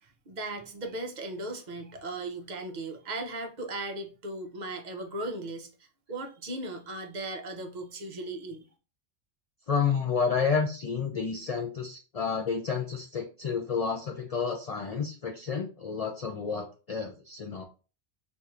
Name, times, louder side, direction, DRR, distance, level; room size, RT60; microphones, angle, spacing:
voice 1, 0.0-5.7 6.1-8.6, right 2 dB, 50° right, 0.6 m, -37 dB
voice 2, 9.7-17.6, left 5 dB, 60° left, 0.4 m, -30 dB
2.6 x 2.4 x 4.2 m
omnidirectional pair, 1.2 m